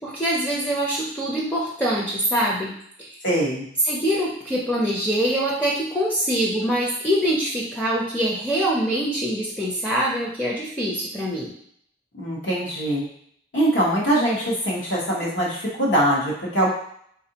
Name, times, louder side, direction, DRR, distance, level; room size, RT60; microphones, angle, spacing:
voice 1, 0.0-2.7 3.0-3.1 3.8-11.5, equal, 10° left, -5 dB, 0.5 m, -24 dB
voice 2, 3.2-3.7 12.1-13.0 13.5-16.7, right 1 dB, 80° left, -5 dB, 1.1 m, -22 dB
3.5 x 2.5 x 2.8 m, 0.66 s
head